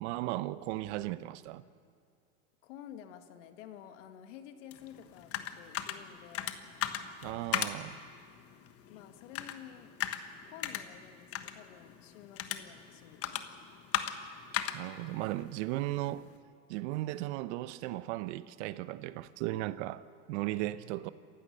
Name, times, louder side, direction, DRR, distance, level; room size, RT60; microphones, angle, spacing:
voice 1, 0.0-1.6 7.2-8.0 14.7-16.3 16.7-21.1, right 16 dB, 60° right, 0.9 m, -36 dB
voice 2, 2.6-6.6 8.9-9.9 10.5-13.5, left 10 dB, 70° left, 2.0 m, -51 dB
sound 1, 4.7-16.4, left 10 dB, 35° left, 1.3 m, -39 dB
27.5 x 15.5 x 6.7 m
supercardioid pair, 115°, 38 cm